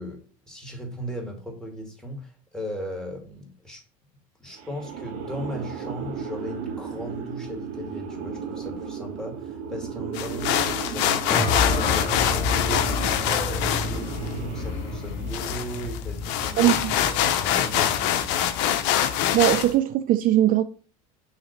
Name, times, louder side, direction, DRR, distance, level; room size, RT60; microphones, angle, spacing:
voice 1, 0.0-3.8 4.4-16.7 17.1-18.6, equal, 5° left, 2.3 m, -37 dB
sound 1, 4.5-15.7, right 7 dB, 80° right, 1.4 m, -35 dB
sound 2, 10.1-19.7, left 10 dB, 70° left, 0.8 m, -25 dB
sound 3, 11.3-19.5, left 3 dB, 35° left, 1.2 m, -30 dB
voice 2, 16.6-16.9 19.3-20.6, right 13 dB, 50° right, 0.5 m, -20 dB
6.5 x 3.2 x 5.8 m
supercardioid pair, 100°, 18 cm